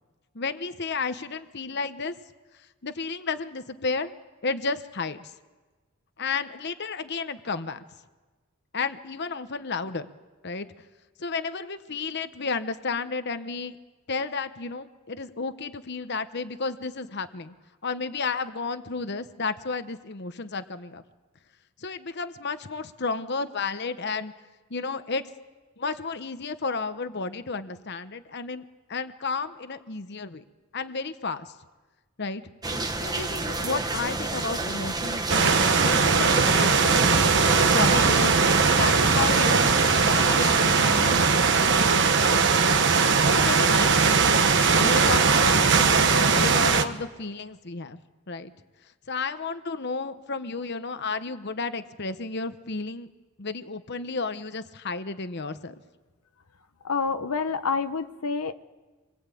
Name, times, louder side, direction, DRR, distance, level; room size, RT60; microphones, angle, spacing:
voice 1, 0.3-2.1 2.8-4.2 4.4-5.3 6.2-7.8 8.7-10.1 10.4-10.7 11.2-13.8 14.1-17.5 17.8-21.0 21.8-24.3 24.7-25.2 25.8-28.6 28.9-30.4 30.7-31.5 32.2-32.4 33.0-37.3 37.7-38.3 38.7-39.7 40.0-41.7 42.3-42.5 43.2-43.9 44.8-48.0 48.3-48.5 49.1-53.1 53.4-55.7, left 4 dB, 50° left, 10 dB, 1.0 m, -32 dB
sound 1, 32.6-41.3, right 2 dB, 20° right, 1.3 m, -30 dB
sound 2, 35.3-46.8, right 5 dB, 55° right, 1.3 m, -20 dB
voice 2, 56.8-58.5, left 5 dB, 85° left, 9 dB, 1.0 m, -27 dB
27.0 x 22.0 x 8.4 m, 1.3 s
head